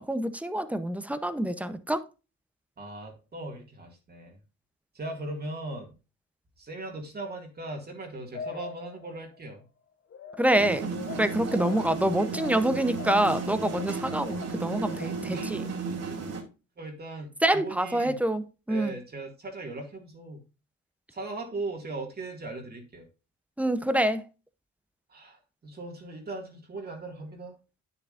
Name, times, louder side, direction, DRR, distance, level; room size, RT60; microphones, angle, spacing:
voice 1, 0.0-2.0 10.4-10.9 11.2-15.8 17.4-19.0 23.6-24.2, right 1 dB, 5° right, 0.7 m, -26 dB
voice 2, 2.8-4.4 4.9-6.0 6.6-9.6 15.3-15.6 16.8-18.2 18.7-20.4 21.1-23.1 25.1-27.5, right 2 dB, 35° right, 2.1 m, -39 dB
sound 1, 8.3-9.4 10.1-15.4, left 6 dB, 45° left, 0.9 m, -43 dB
sound 2, 10.6-16.4, right 4 dB, 55° right, 2.5 m, -34 dB
9.8 x 7.0 x 2.5 m
cardioid pair, 125°, 29 cm